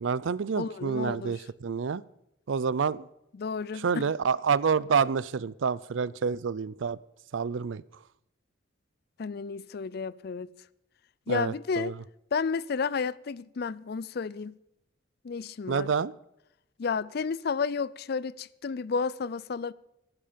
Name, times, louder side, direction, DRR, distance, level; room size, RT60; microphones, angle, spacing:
voice 1, 0.0-2.0 2.5-3.1 3.8-7.0 7.3-7.8 11.3-12.0 15.7-16.1, right 6 dB, 80° right, 0.5 m, -28 dB
voice 2, 0.6-1.4 3.3-4.0 9.2-10.5 11.3-12.0 12.3-14.6 15.2-15.9 16.8-19.7, left 5 dB, 55° left, 0.4 m, -32 dB
14.5 x 12.0 x 5.1 m
head